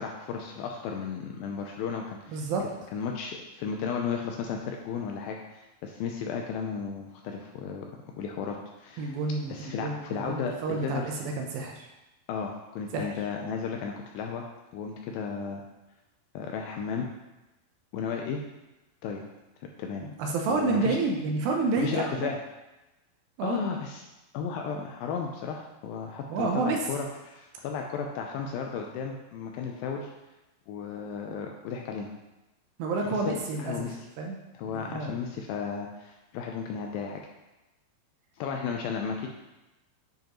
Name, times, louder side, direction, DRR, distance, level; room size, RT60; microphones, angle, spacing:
voice 1, 0.0-2.5 2.9-7.9 8.2-9.2 9.5-11.1 12.3-14.4 14.7-15.6 16.3-17.1 17.9-18.4 19.0-19.2 19.8-20.0 20.5-21.0 21.8-22.4 23.4-24.0 24.3-30.1 30.7-32.1 33.3-34.1 34.5-37.2 38.4-39.3, left 6 dB, 80° left, 1 dB, 2.1 m, -34 dB
voice 2, 2.3-2.7 9.0-11.9 12.9-13.1 20.0-22.3 23.4-23.6 26.3-26.8 32.8-34.4 34.7-35.1, right 3 dB, 80° right, 2 dB, 2.3 m, -29 dB
9.2 x 5.1 x 3.0 m, 1.0 s
omnidirectional pair, 4.6 m